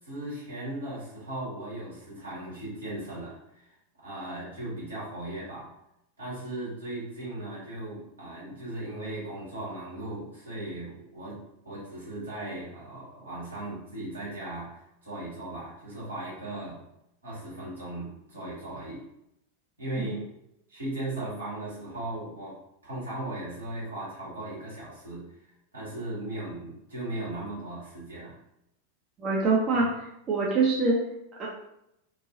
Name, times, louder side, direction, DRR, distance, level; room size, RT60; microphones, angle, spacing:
voice 1, 0.0-3.7 4.0-5.7 6.2-16.8 17.2-19.0 19.8-20.2 20.7-22.6 22.8-28.4 29.7-29.9, right 1 dB, 75° right, -7 dB, 1.5 m, -37 dB
voice 2, 29.2-29.9 30.3-31.0 31.4-31.5, right 3 dB, 30° right, -4 dB, 0.6 m, -24 dB
3.1 x 2.6 x 2.6 m, 0.81 s
figure-of-eight pair, 90°, 0 cm